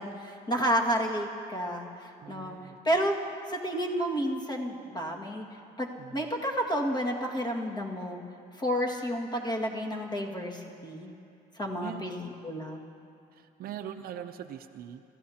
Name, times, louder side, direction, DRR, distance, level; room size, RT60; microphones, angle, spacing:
voice 1, 0.0-2.6 2.8-3.2 3.5-5.4 5.8-8.2 8.6-11.1 11.6-12.8, equal, 25° left, -1 dB, 2.0 m, -31 dB
voice 2, 2.2-2.8 6.0-6.3 11.8-12.2 13.3-15.0, right 10 dB, 65° right, 7 dB, 0.6 m, -42 dB
26.5 x 14.5 x 2.9 m, 2.6 s
cardioid pair, 110°, 17 cm